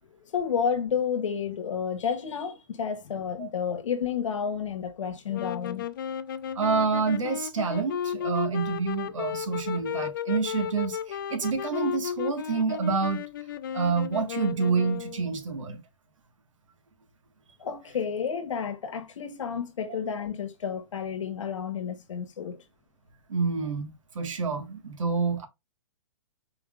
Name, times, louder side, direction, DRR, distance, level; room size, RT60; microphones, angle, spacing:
voice 1, 0.2-5.9 17.6-22.6, left 7 dB, 75° left, 1.2 m, -31 dB
sound 1, 5.3-15.3, left 9 dB, 40° left, 0.4 m, -34 dB
voice 2, 6.5-13.2 13.7-15.8 23.3-25.4, right 5 dB, 75° right, 1.5 m, -28 dB
4.4 x 3.6 x 2.3 m
hypercardioid pair, 165°, 16 cm